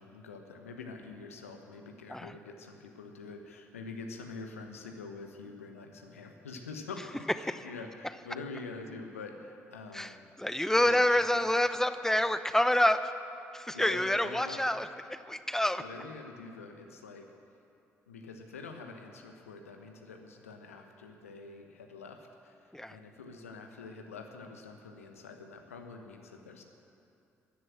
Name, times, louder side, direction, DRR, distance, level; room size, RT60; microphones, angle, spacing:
voice 1, 0.0-7.0 7.4-10.2 10.8-11.0 13.7-14.6 15.8-17.3 18.1-26.6, left 4 dB, 85° left, 4 dB, 1.1 m, -45 dB
voice 2, 9.9-13.1 13.5-15.8 22.7-23.0, left 1 dB, 5° left, 12 dB, 0.8 m, -28 dB
14.5 x 11.0 x 7.6 m, 2.7 s
figure-of-eight pair, 45°, 7 cm